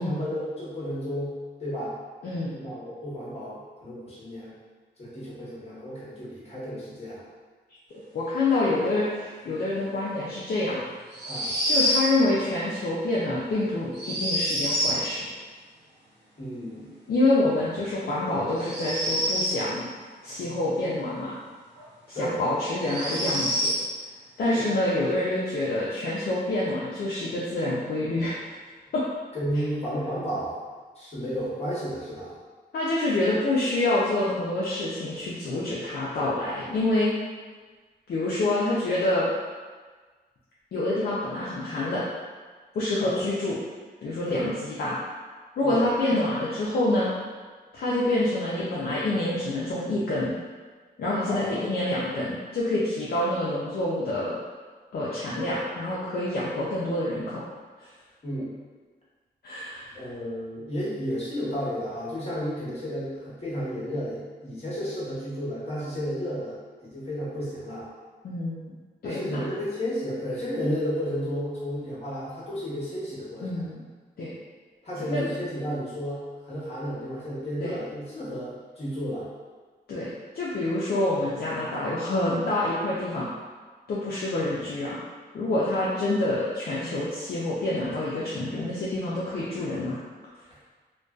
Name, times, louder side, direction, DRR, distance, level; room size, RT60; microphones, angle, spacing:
voice 1, 0.0-1.9 2.5-4.5 5.0-7.2 11.3-11.6 16.4-16.9 22.1-22.4 24.5-24.7 29.3-30.6 31.0-32.3 43.0-43.2 44.3-44.5 45.6-45.9 51.3-51.4 58.2-58.5 59.9-66.6 66.8-67.9 69.0-73.6 74.8-79.3, equal, 35° left, -8 dB, 1.0 m, -32 dB
voice 2, 2.2-2.6 8.1-10.8 11.7-15.3 17.1-19.8 20.2-21.4 22.1-23.7 24.4-28.4 28.9-29.0 32.7-37.1 38.1-39.3 40.7-42.0 42.7-43.6 44.0-45.0 45.6-47.1 47.7-50.3 51.0-54.4 54.9-57.4 57.8-57.9 59.4-60.0 68.2-68.7 69.0-69.4 73.4-73.9 74.2-74.3 75.1-75.3 77.6-77.8 79.9-83.3 83.9-85.0 85.3-90.0, left 2 dB, 60° left, -7 dB, 0.4 m, -27 dB
sound 1, 11.1-12.1 13.9-15.0 18.5-19.6 21.8-21.9 22.8-23.8, equal, 90° right, 0.8 m, -26 dB
2.5 x 2.2 x 2.3 m, 1.4 s
cardioid pair, 95°, 18 cm